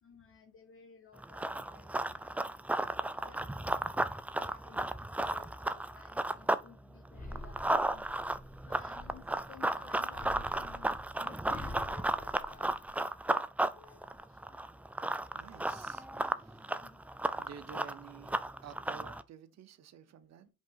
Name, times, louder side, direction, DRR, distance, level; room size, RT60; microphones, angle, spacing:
voice 1, 0.0-4.9 5.2-8.1 8.6-12.7 13.7-14.6 16.8-17.0, left 6 dB, 45° left, 1.1 m, -57 dB
Run, 1.2-6.7 7.0-19.2, right 1 dB, 5° right, 0.3 m, -34 dB
sound 1, 7.1-9.5 10.1-13.2 13.6-14.2, left 1 dB, 25° left, 1.4 m, -47 dB
voice 2, 15.3-16.6 17.4-20.5, right 7 dB, 60° right, 0.8 m, -51 dB
5.3 x 3.7 x 5.6 m
cardioid pair, 90°, 30 cm